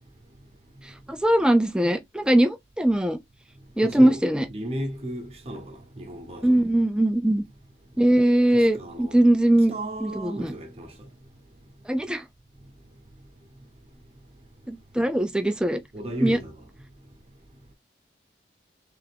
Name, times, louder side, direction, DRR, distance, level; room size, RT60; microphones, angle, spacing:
voice 1, 1.1-3.2 3.8-4.5 6.4-7.4 8.0-9.7 10.0-10.5 11.9-12.2 14.7-15.8 16.2-16.4, right 1 dB, 5° right, 0.5 m, -21 dB
voice 2, 3.8-4.2 4.5-6.6 8.5-9.2 9.7-10.9 15.9-16.5, right 1 dB, 35° right, 1.0 m, -34 dB
3.5 x 3.4 x 3.4 m
head